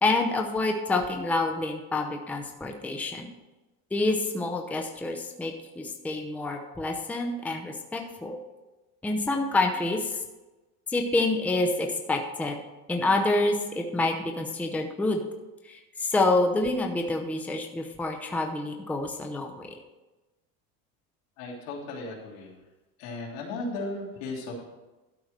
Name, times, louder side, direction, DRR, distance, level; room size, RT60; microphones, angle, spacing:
voice 1, 0.0-3.3 3.9-8.4 9.0-10.2 10.9-12.6 12.9-15.2 15.6-19.7, left 2 dB, 5° left, 2 dB, 0.7 m, -27 dB
voice 2, 21.4-22.5 23.0-24.6, left 2 dB, 85° left, -3 dB, 3.3 m, -35 dB
12.5 x 4.7 x 6.6 m, 1.1 s
cardioid pair, 150°, 38 cm